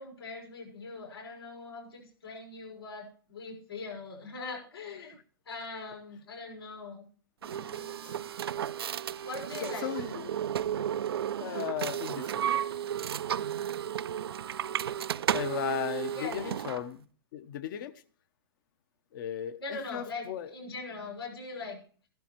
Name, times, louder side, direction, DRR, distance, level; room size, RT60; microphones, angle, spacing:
voice 1, 0.0-5.2 5.5-7.1 7.4-8.3 9.2-9.9 16.1-16.5 19.6-21.8, left 3 dB, 85° left, 6.0 m, -41 dB
sound 1, 7.4-16.8, right 9 dB, 80° right, 0.4 m, -33 dB
voice 2, 9.6-10.4 10.8-12.5 15.3-17.0 17.3-18.0 19.1-20.5, left 10 dB, 55° left, 1.0 m, -36 dB
14.5 x 12.0 x 3.0 m
hypercardioid pair, 120°, 12 cm